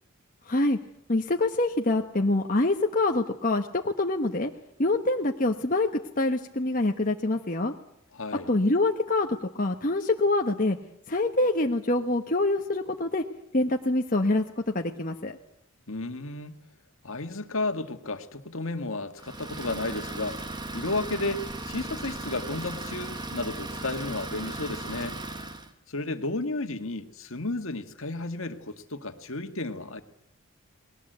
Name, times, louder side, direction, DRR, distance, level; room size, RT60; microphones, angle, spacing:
voice 1, 0.5-0.8 1.1-4.5 4.8-5.9 6.2-7.7 8.5-10.8 11.1-13.2 13.5-15.4, left 2 dB, 40° left, 3 dB, 1.2 m, -25 dB
voice 2, 8.1-8.5 15.9-16.5 17.0-25.2 25.9-30.0, left 2 dB, 65° left, 8 dB, 2.0 m, -33 dB
Idling, 19.2-25.7, right 2 dB, 20° right, 1.8 m, -37 dB
30.0 x 20.5 x 8.1 m, 0.79 s
head